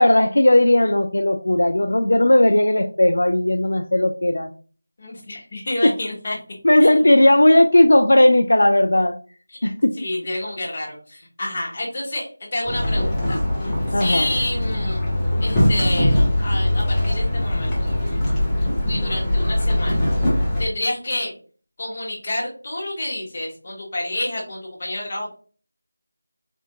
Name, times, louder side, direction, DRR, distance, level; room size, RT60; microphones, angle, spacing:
voice 1, 0.0-4.5 5.8-5.9 6.6-9.1 9.6-9.9 13.9-14.3, left 1 dB, 70° left, 7 dB, 0.4 m, -16 dB
voice 2, 5.0-6.4 6.8-7.0 9.5-9.7 10.0-13.4 14.0-18.0 18.8-20.1 20.6-21.3 21.8-25.4, left 1 dB, 25° left, -3 dB, 1.0 m, -29 dB
sound 1, 12.6-20.6, left 1 dB, 5° left, 0.6 m, -21 dB
4.3 x 2.4 x 2.8 m, 0.40 s
figure-of-eight pair, 175°, 0 cm